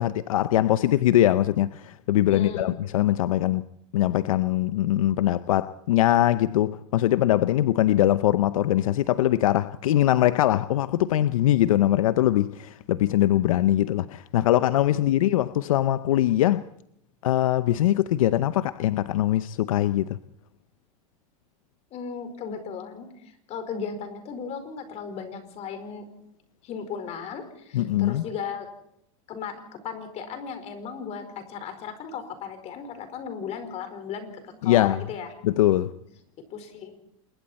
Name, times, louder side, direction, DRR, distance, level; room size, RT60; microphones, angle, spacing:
voice 1, 0.0-3.7 3.9-16.6 17.2-20.2 27.7-28.2 34.6-35.0 35.4-35.9, left 13 dB, 85° left, 0.7 m, -22 dB
voice 2, 2.3-2.7 14.9-15.0 21.9-26.1 26.6-28.6 29.3-35.3 36.5-37.0, left 6 dB, 40° left, 4.8 m, -36 dB
27.5 x 21.5 x 4.3 m
supercardioid pair, 125°, 17 cm